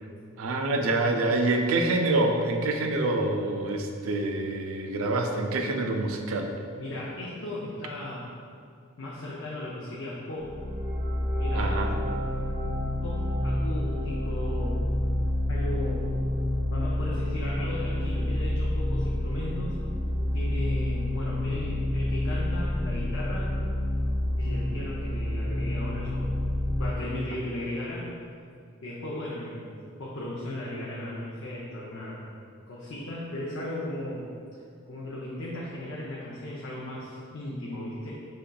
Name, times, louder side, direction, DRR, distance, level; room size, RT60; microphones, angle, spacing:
voice 1, 0.4-6.5 11.5-12.0, right 2 dB, 80° right, 3 dB, 0.4 m, -26 dB
voice 2, 6.8-8.3 9.0-10.6 11.4-11.9 12.3-14.8 15.5-16.1 16.7-19.7 20.3-23.5 24.4-26.3 26.8-28.1 28.8-29.7 30.0-32.2 32.7-34.3 34.8-38.1, left 1 dB, 65° left, -6 dB, 0.6 m, -36 dB
sound 1, 10.4-26.9, left 1 dB, 35° right, 0.7 m, -28 dB
5.3 x 3.6 x 2.3 m, 2.4 s
head